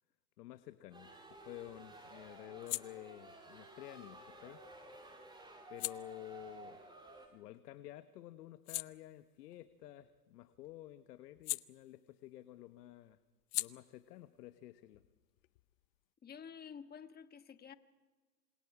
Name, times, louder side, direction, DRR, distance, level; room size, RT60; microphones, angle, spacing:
voice 1, 0.4-4.6 5.7-6.8 7.3-13.2 13.5-15.0, left 14 dB, 70° left, 1.3 m, -51 dB
sound 1, 0.9-7.8 8.2-12.4 12.7-16.1, left 23 dB, 55° left, 0.8 m, -47 dB
sound 2, 0.9-7.3, right 2 dB, 10° right, 6.8 m, -54 dB
voice 2, 16.2-17.7, left 7 dB, 20° left, 1.5 m, -50 dB
28.0 x 27.5 x 4.9 m
hypercardioid pair, 110°, 48 cm